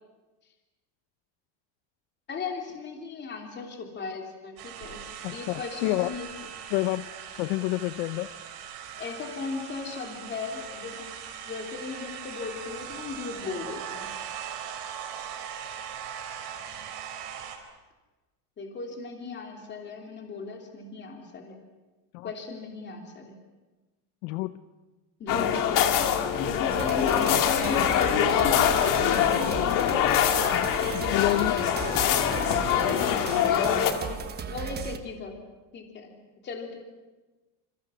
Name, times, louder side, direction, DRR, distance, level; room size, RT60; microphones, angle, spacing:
voice 1, 2.3-6.3 9.0-11.1 11.4-14.1 18.6-21.6 22.2-23.4 25.2-25.9 26.4-28.6 28.9-29.6 30.4-30.9 33.9-35.4 35.7-36.1 36.4-36.8, left 4 dB, 20° left, 2 dB, 3.1 m, -36 dB
sound 1, 4.6-17.6, right 8 dB, 55° right, 5.4 m, -40 dB
voice 2, 5.2-6.1 6.7-7.1 7.4-8.3 22.1-22.3 24.2-24.5 29.2-29.9 30.5-30.7 31.1-31.6, left 18 dB, 75° left, 12 dB, 0.9 m, -29 dB
sound 2, 25.3-33.9, left 9 dB, 40° left, 2.2 m, -24 dB
sound 3, 26.7-35.0, right 7 dB, 20° right, 1.1 m, -37 dB
29.0 x 28.0 x 6.3 m, 1.2 s
cardioid pair, 175°, 47 cm